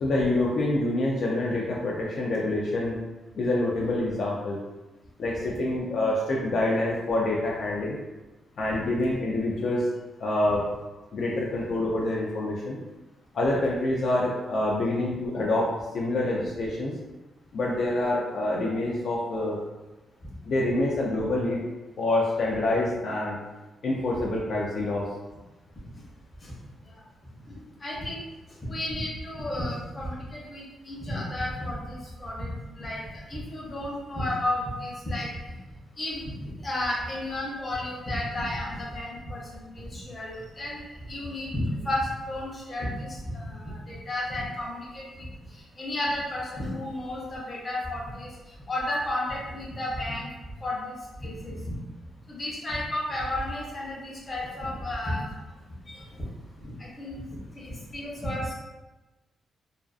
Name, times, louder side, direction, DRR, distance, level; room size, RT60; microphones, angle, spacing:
voice 1, 0.0-3.0 3.4-4.6 5.2-8.0 8.6-9.9 10.2-10.7 11.1-12.8 13.3-16.9 17.5-19.6 20.5-21.6 22.0-23.4 23.8-25.1, left 2 dB, 60° left, -4 dB, 0.3 m, -26 dB
voice 2, 27.4-28.2 28.7-35.6 36.0-40.8 41.1-45.3 45.5-48.3 48.7-50.3 50.6-51.7 52.3-55.3 55.8-56.0 56.6-58.5, left 1 dB, 30° left, -5 dB, 0.7 m, -33 dB
2.4 x 2.3 x 2.4 m, 1.1 s
wide cardioid pair, 145°, 0 cm